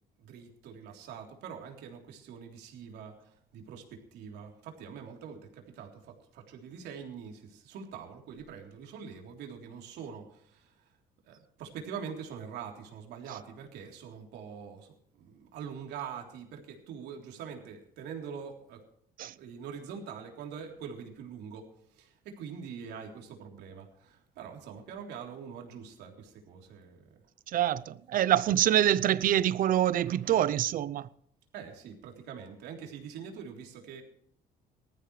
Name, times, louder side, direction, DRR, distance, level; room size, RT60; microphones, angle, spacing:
voice 1, 0.2-10.7 11.3-18.8 19.3-27.1 29.8-30.4 31.5-34.0, right 7 dB, 80° right, 3.5 m, -44 dB
voice 2, 27.5-31.1, right 11 dB, 55° right, 0.7 m, -25 dB
19.5 x 14.0 x 3.3 m
cardioid pair, 110°, 17 cm